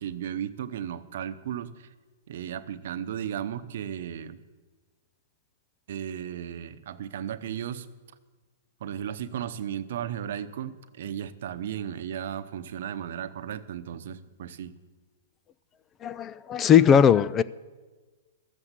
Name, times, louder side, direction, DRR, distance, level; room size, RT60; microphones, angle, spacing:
voice 1, 0.0-1.9 2.3-4.4 5.9-7.9 8.8-14.7, right 9 dB, 60° right, 10 dB, 0.9 m, -35 dB
voice 2, 16.0-17.4, left 8 dB, 20° left, 18 dB, 0.3 m, -19 dB
14.0 x 7.4 x 8.2 m, 1.3 s
hypercardioid pair, 135°, 0 cm